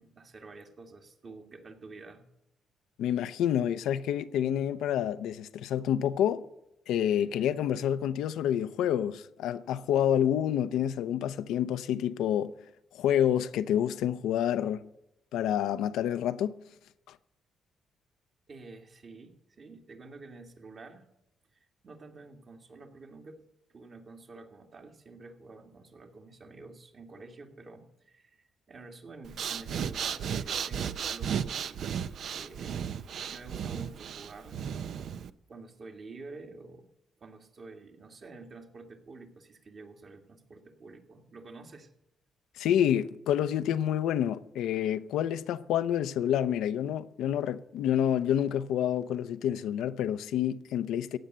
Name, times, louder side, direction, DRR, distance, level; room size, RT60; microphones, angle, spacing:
voice 1, 0.0-2.3 18.5-21.1 21.8-23.4 23.7-31.9 32.3-32.9 33.3-34.7 35.5-36.9 37.2-41.9, right 3 dB, 45° right, 2.2 m, -49 dB
voice 2, 3.0-6.4 6.9-12.5 12.9-14.9 15.3-16.5 42.6-51.2, left 10 dB, 85° left, 0.6 m, -28 dB
Breathing, 29.2-35.3, right 8 dB, 65° right, 0.6 m, -34 dB
15.5 x 8.9 x 6.8 m
cardioid pair, 90°, 0 cm